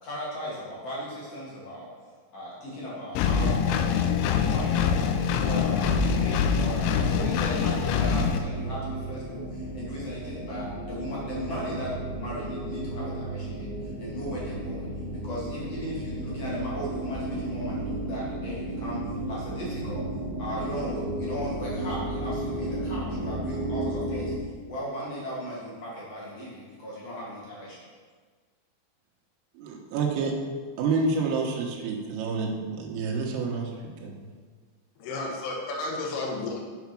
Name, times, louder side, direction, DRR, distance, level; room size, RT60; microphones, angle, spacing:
voice 1, 0.0-1.9 2.3-14.9 15.2-20.0 20.4-24.3 24.7-27.8, equal, 40° left, -7 dB, 2.5 m, -37 dB
Engine, 3.2-8.4, left 6 dB, 85° left, 3.2 m, -24 dB
sound 1, 5.2-24.4, right 1 dB, 60° right, 1.9 m, -34 dB
voice 2, 29.6-30.3 30.8-33.7 34.0-34.1, right 4 dB, 85° right, 1 dB, 3.9 m, -28 dB
voice 3, 35.0-36.6, left 2 dB, 60° left, -2 dB, 3.2 m, -32 dB
8.1 x 7.2 x 6.1 m, 1.5 s
omnidirectional pair, 5.8 m